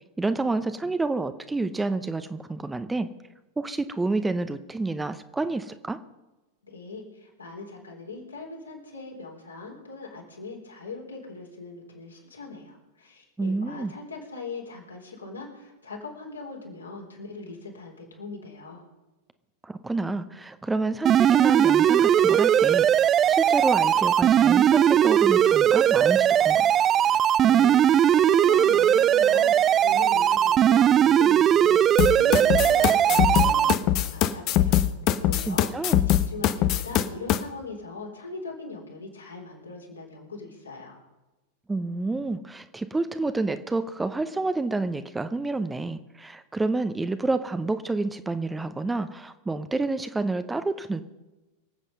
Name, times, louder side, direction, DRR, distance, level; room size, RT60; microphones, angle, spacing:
voice 1, 0.2-3.1 3.6-6.0 13.4-13.9 19.6-22.9 23.3-26.7 35.4-36.0 41.7-51.0, right 3 dB, 10° right, 11 dB, 0.8 m, -29 dB
voice 2, 6.6-18.8 27.4-34.8 35.2-41.0, left 3 dB, 80° left, -1 dB, 4.0 m, -40 dB
sound 1, 21.1-33.7, right 10 dB, 30° right, 0.4 m, -19 dB
sound 2, 32.0-37.4, left 12 dB, 40° left, 0.8 m, -22 dB
24.5 x 8.2 x 5.4 m, 1.1 s
figure-of-eight pair, 90°, 0 cm